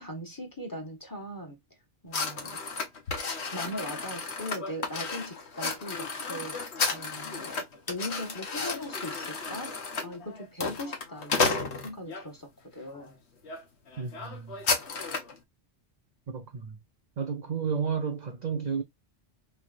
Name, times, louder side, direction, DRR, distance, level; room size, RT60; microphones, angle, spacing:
voice 1, 0.0-1.6 2.0-2.6 3.5-6.6 6.9-9.7 10.0-13.2, equal, 20° left, 1.2 m, -39 dB
sound 1, 2.1-12.3 12.9-13.1 13.4-13.6 13.9-15.4, left 4 dB, 70° left, 1.3 m, -33 dB
voice 2, 14.0-14.6 16.3-16.8 17.2-18.8, right 6 dB, 50° right, 0.5 m, -32 dB
3.8 x 3.1 x 2.4 m
omnidirectional pair, 1.2 m